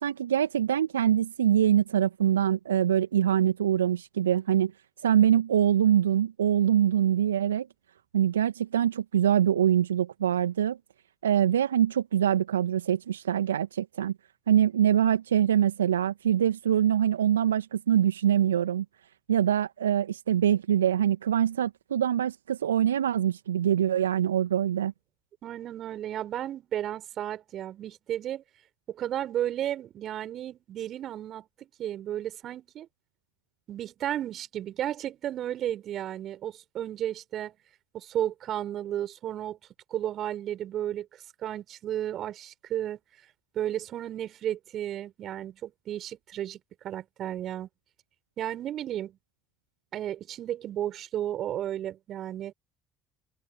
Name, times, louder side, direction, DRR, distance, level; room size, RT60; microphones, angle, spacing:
voice 1, 0.0-4.7 5.0-7.7 8.1-10.8 11.2-14.1 14.5-18.9 19.3-24.9, right 10 dB, 80° right, 1.8 m, -24 dB
voice 2, 25.4-28.4 28.9-31.5 31.8-32.9 33.7-37.5 37.9-39.6 39.9-41.1 41.4-43.0 43.5-47.7 48.4-49.2 49.9-52.5, right 11 dB, 50° right, 7.3 m, -33 dB
open air
figure-of-eight pair, 55°, 0 cm